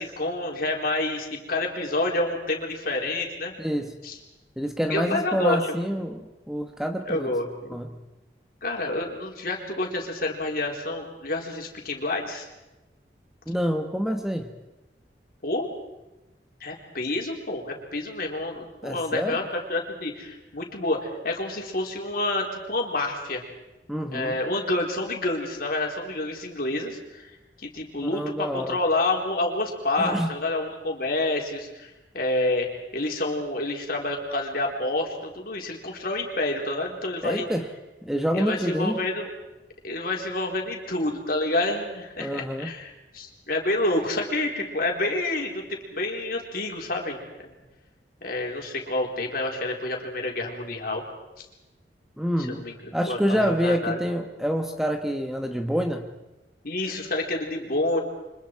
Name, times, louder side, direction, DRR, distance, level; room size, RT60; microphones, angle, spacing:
voice 1, 0.0-3.5 4.0-4.2 4.9-5.6 7.1-7.8 8.6-12.5 15.4-15.7 16.6-23.4 24.1-27.3 27.6-31.9 32.1-32.7 32.9-37.5 38.3-39.3 39.8-47.5 48.2-51.0 52.5-54.0 56.6-58.0, left 2 dB, 55° left, 0 dB, 4.1 m, -28 dB
voice 2, 3.6-3.9 4.6-7.3 7.7-7.9 13.5-14.5 18.8-19.4 23.9-24.4 28.1-28.8 30.0-30.3 37.2-37.7 38.0-39.0 42.2-42.7 52.2-52.6 52.9-56.1, equal, 5° right, 4 dB, 1.2 m, -27 dB
30.0 x 25.0 x 4.7 m, 1.0 s
head